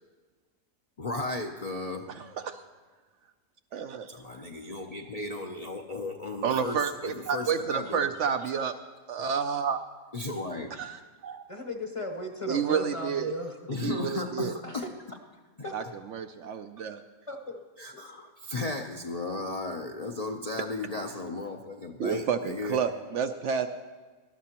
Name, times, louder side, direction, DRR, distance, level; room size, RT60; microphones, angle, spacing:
voice 1, 1.0-2.1 4.1-8.0 9.2-9.3 10.1-10.9 13.7-14.8 17.8-22.8, left 2 dB, 45° left, 2 dB, 0.5 m, -35 dB
voice 2, 2.1-2.6 3.7-4.1 6.4-8.7 9.1-9.8 10.8-11.4 12.5-13.3 13.8-14.5 15.7-15.8 16.1-17.0 22.0-23.7, right 7 dB, 65° right, 8 dB, 0.8 m, -30 dB
voice 3, 11.5-13.6 14.6-14.9 15.3-15.9 17.3-18.0, left 2 dB, 25° left, 4 dB, 0.8 m, -37 dB
18.5 x 12.5 x 2.9 m, 1.4 s
omnidirectional pair, 1.5 m